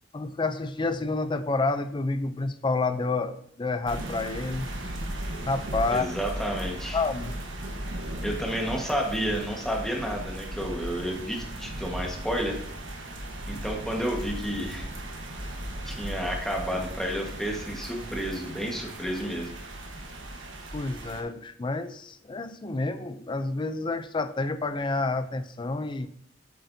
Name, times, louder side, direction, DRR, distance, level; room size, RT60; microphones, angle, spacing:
voice 1, 0.1-4.7 5.5-6.1 6.9-7.4 20.7-26.1, left 3 dB, 25° left, 10 dB, 0.4 m, -29 dB
sound 1, 3.8-21.2, right 1 dB, 90° right, 1.3 m, -37 dB
voice 2, 5.9-7.0 8.2-12.6 13.5-14.9 15.9-19.6, equal, 5° left, 0 dB, 1.4 m, -31 dB
8.4 x 7.7 x 2.7 m, 0.70 s
head